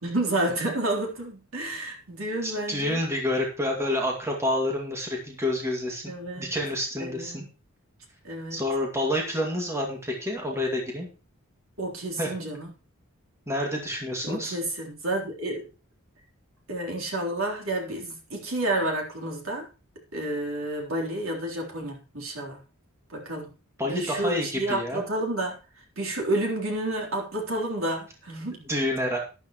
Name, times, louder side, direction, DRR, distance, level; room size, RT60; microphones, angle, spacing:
voice 1, 0.0-3.0 6.1-6.5 7.0-7.5 8.2-8.6 11.8-12.7 14.2-15.7 16.7-19.7 20.1-22.6 23.1-23.5 23.8-25.6 26.0-28.7, right 1 dB, 70° right, 3.7 m, -30 dB
voice 2, 2.4-7.4 8.5-11.1 12.2-12.3 13.5-14.6 23.8-25.0 28.7-29.2, left 1 dB, 15° right, 2.3 m, -28 dB
12.0 x 11.5 x 3.1 m
head